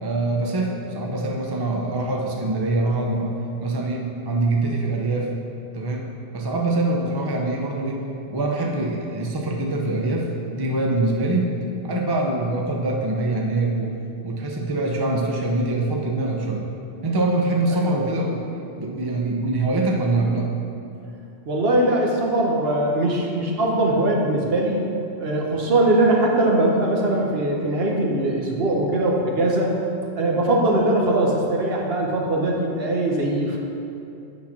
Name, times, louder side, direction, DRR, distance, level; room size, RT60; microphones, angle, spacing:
voice 1, 0.0-3.3 3.6-5.3 5.7-6.1 6.3-11.5 11.8-13.9 14.2-16.6 17.0-18.4 18.8-20.5, right 2 dB, 25° right, -1 dB, 0.5 m, -24 dB
voice 2, 21.5-24.8 25.2-29.7 30.1-33.6, right 1 dB, 55° right, -1 dB, 1.1 m, -21 dB
8.6 x 4.0 x 5.9 m, 2.6 s
omnidirectional pair, 1.3 m